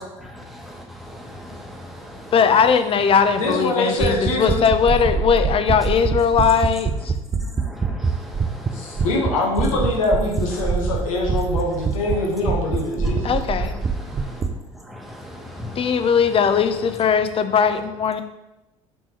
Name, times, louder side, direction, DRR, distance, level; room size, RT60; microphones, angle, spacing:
voice 1, 0.3-1.6 2.2-2.4 7.4-9.1 10.6-10.7 11.3-11.4 12.1-12.3 13.0-14.4 14.7-16.4, left 1 dB, ahead, 0 dB, 1.0 m, -39 dB
voice 2, 2.3-7.1 13.2-13.7 15.8-18.2, left 6 dB, 35° left, 9 dB, 0.4 m, -19 dB
voice 3, 3.4-4.6 8.7-13.3, left 2 dB, 80° left, 0 dB, 0.9 m, -23 dB
sound 1, 4.0-8.7 9.0-9.3 9.6-12.1 12.5-14.5, right 5 dB, 25° right, 0.5 m, -23 dB
4.3 x 3.5 x 2.9 m, 0.95 s
hypercardioid pair, 55°, 17 cm